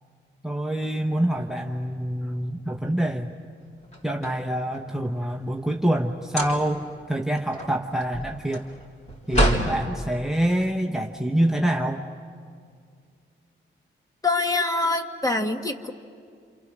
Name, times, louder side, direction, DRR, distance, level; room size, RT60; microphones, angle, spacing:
voice 1, 0.4-3.3 4.0-8.7 9.3-12.1, right 1 dB, ahead, 3 dB, 1.1 m, -26 dB
sound 1, 3.8-5.0 6.2-6.9 7.3-9.8, right 1 dB, 35° left, 4.1 m, -27 dB
voice 2, 14.2-15.9, left 2 dB, 15° left, 5 dB, 1.7 m, -24 dB
28.5 x 27.0 x 6.3 m, 2.2 s
cardioid pair, 80°, 21 cm